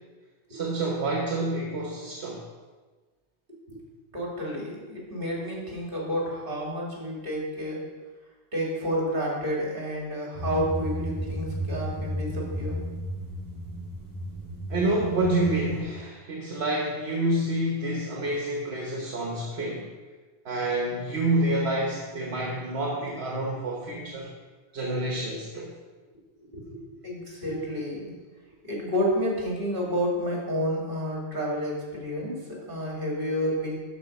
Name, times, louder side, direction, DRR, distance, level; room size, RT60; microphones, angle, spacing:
voice 1, 0.5-2.4 14.7-19.9 20.4-24.3 24.7-25.7, right 1 dB, 75° right, -2 dB, 1.4 m, -28 dB
voice 2, 4.1-7.8 8.5-12.7 17.2-17.3 26.4-26.8 27.0-28.1 28.7-33.8, equal, 55° right, -4 dB, 2.7 m, -30 dB
sound 1, 10.4-15.8, equal, 15° left, 2.1 m, -34 dB
12.0 x 4.3 x 5.3 m, 1.3 s
omnidirectional pair, 1.1 m